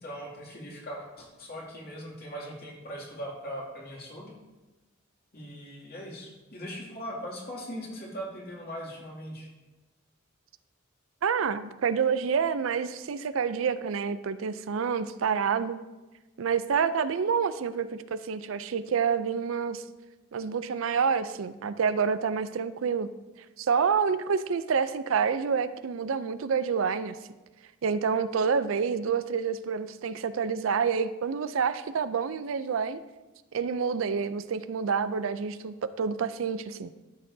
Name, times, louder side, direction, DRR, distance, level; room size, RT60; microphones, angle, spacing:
voice 1, 0.0-4.3 5.3-9.5, equal, 50° left, -4 dB, 2.4 m, -40 dB
voice 2, 11.2-15.8 16.4-19.8 20.3-23.1 23.6-27.2 27.8-33.0 33.5-36.9, right 6 dB, 75° right, 13 dB, 0.4 m, -28 dB
13.5 x 6.7 x 2.7 m, 1.1 s
head